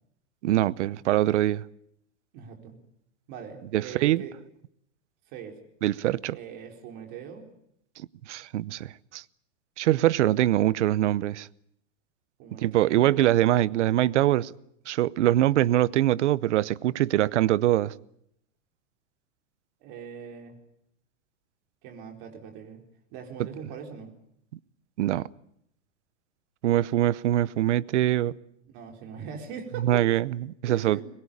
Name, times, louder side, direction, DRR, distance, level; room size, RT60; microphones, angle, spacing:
voice 1, 0.4-1.6 3.7-4.2 5.8-6.4 8.3-9.2 9.8-11.5 12.6-14.5 14.9-17.9 25.0-25.3 26.6-28.3 29.8-31.0, right 13 dB, 65° right, 0.9 m, -23 dB
voice 2, 2.3-2.8 3.3-4.4 5.3-5.6 6.3-7.4 12.4-13.2 19.8-20.6 21.8-22.8 23.1-24.1 28.7-30.1 30.7-31.0, right 7 dB, 35° right, 4.3 m, -41 dB
23.0 x 21.0 x 8.6 m
supercardioid pair, 175°, 38 cm